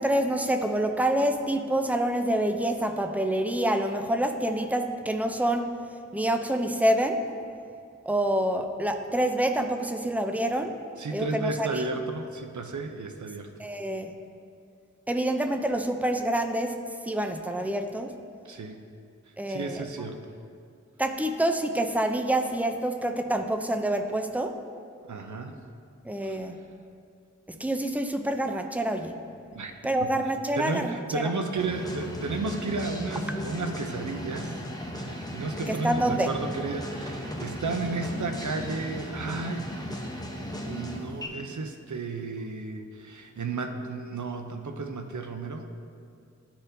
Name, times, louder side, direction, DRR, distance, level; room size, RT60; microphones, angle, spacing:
voice 1, 0.0-5.7 6.1-7.2 8.1-10.7 11.1-11.9 13.6-14.1 15.1-16.8 17.0-18.1 19.4-19.8 21.0-24.6 26.0-26.6 27.5-29.1 29.8-31.3 33.3-33.4 35.7-36.3, right 1 dB, 5° right, 6 dB, 0.4 m, -27 dB
voice 2, 11.0-13.5 18.5-18.8 19.5-20.3 25.1-25.6 26.2-26.4 29.5-29.7 30.0-30.1 30.6-34.6 34.9-39.7 40.7-45.7, right 3 dB, 80° right, 5 dB, 0.5 m, -33 dB
sound 1, 31.6-41.3, equal, 15° left, 0.8 m, -36 dB
11.0 x 4.3 x 2.6 m, 2.4 s
wide cardioid pair, 40°, 29 cm